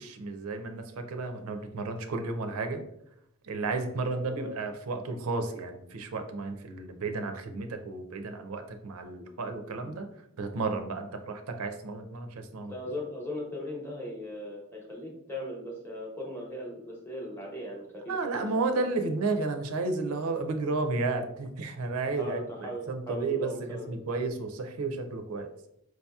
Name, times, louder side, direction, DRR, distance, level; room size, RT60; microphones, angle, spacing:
voice 1, 0.0-2.8 3.4-10.1 10.4-12.7 18.1-25.5, right 3 dB, 85° right, 6 dB, 0.5 m, -32 dB
voice 2, 12.7-18.9 22.2-23.9, left 1 dB, 10° left, -2 dB, 0.8 m, -39 dB
4.7 x 2.7 x 2.3 m, 0.77 s
head